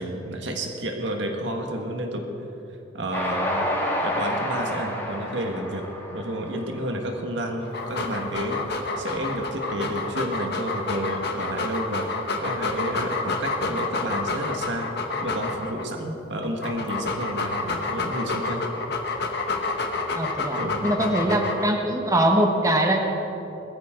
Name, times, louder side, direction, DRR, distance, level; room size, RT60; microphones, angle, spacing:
voice 1, 0.0-2.2 2.9-3.7 4.0-5.8 6.1-8.6 9.0-12.1 12.4-14.9 15.2-18.6 20.6-21.4, right 1 dB, 70° right, 2 dB, 1.8 m, -30 dB
Train, 3.1-7.5, left 1 dB, 15° left, 2.2 m, -29 dB
Dog, 7.6-15.9 16.4-21.8, left 3 dB, 60° left, 1.5 m, -29 dB
voice 2, 20.1-23.0, right 1 dB, 15° right, 2 dB, 1.2 m, -22 dB
20.5 x 13.5 x 3.9 m, 3.0 s
head